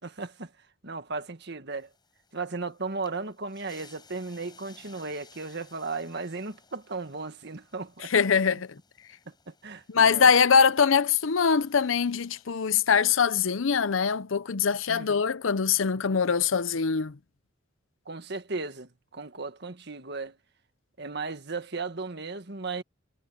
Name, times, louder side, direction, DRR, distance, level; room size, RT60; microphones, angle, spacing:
voice 1, 0.0-0.5 0.8-1.9 2.3-8.1 8.5-8.6 9.2-10.3 14.9-15.2 18.0-20.4 21.0-22.8, right 3 dB, 55° right, 1.7 m, -36 dB
sound 1, 1.7-12.4, left 5 dB, 20° left, 6.2 m, -59 dB
voice 2, 8.1-8.7 9.9-17.2, left 6 dB, 75° left, 0.7 m, -23 dB
head